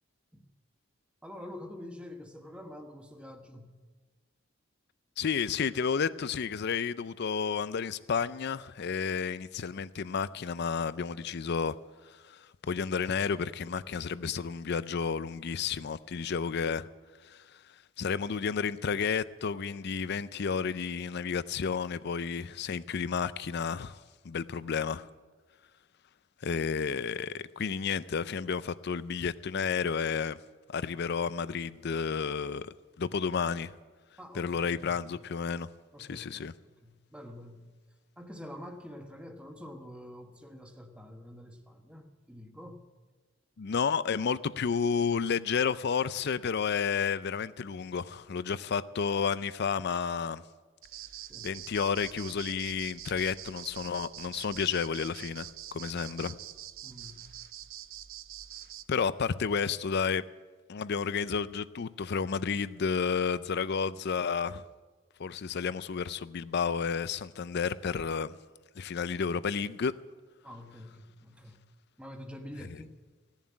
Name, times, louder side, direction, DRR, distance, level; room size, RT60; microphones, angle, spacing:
voice 1, 1.2-3.7 34.2-35.1 35.9-37.6 38.2-42.8 51.2-51.5 56.8-57.3 70.4-71.6 72.0-73.0, left 1 dB, 5° right, 1.2 m, -47 dB
voice 2, 5.2-11.8 12.1-16.9 17.2-17.4 18.0-25.1 26.4-30.4 30.7-33.7 34.3-35.7 36.0-36.5 43.6-50.4 51.4-56.4 58.9-60.2 60.7-64.6 65.2-68.4 68.8-69.9, left 6 dB, 55° left, 0.5 m, -31 dB
sound 1, 50.8-58.8, right 13 dB, 85° right, 0.5 m, -45 dB
16.0 x 7.3 x 9.6 m
head